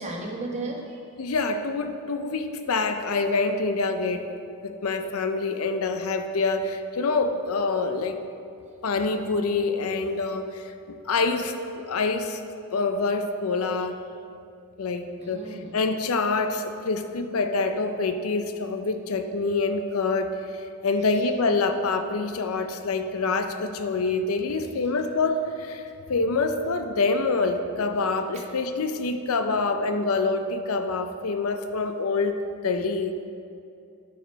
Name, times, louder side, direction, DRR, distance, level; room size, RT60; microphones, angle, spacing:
voice 1, 0.0-1.0 15.2-15.7 25.8-25.9 28.3-28.4, right 2 dB, 30° right, -1 dB, 1.1 m, -34 dB
voice 2, 1.2-4.3 4.6-8.2 8.8-12.4 12.7-13.9 14.8-32.3 32.6-33.2, left 3 dB, 70° left, 7 dB, 0.5 m, -26 dB
11.5 x 5.1 x 4.5 m, 2.6 s
head